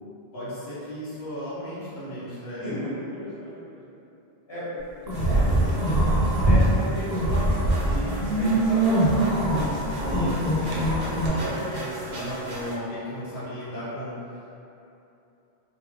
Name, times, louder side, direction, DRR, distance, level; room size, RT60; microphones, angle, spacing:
voice 1, 0.3-2.7 7.8-8.6 10.1-14.6, equal, 80° left, -11 dB, 1.0 m, -35 dB
voice 2, 2.5-3.8 4.5-7.5 8.1-10.0 11.4-11.8 12.2-12.3, left 1 dB, 25° left, -13 dB, 1.2 m, -36 dB
sound 1, 5.1-6.6 7.0-11.3, right 1 dB, 50° right, 0.6 m, -22 dB
sound 2, 5.1-12.7, right 2 dB, 85° right, 0.8 m, -37 dB
2.4 x 2.2 x 3.1 m, 2.8 s
omnidirectional pair, 1.0 m